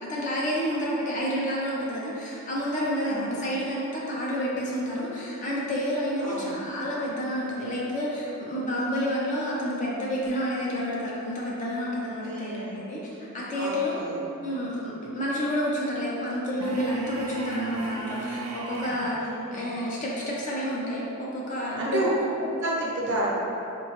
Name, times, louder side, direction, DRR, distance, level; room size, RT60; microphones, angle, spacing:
voice 1, 0.0-13.1 13.3-14.0 14.4-19.2 19.5-22.0, equal, 35° left, -6 dB, 0.6 m, -29 dB
voice 2, 6.2-6.5 12.2-12.8 13.6-14.1 19.2-19.7 21.8-22.1 22.4-23.3, right 1 dB, 55° right, -6 dB, 0.7 m, -30 dB
sound 1, 16.6-19.1, right 3 dB, 85° right, 0.4 m, -35 dB
4.6 x 2.2 x 2.9 m, 2.9 s
head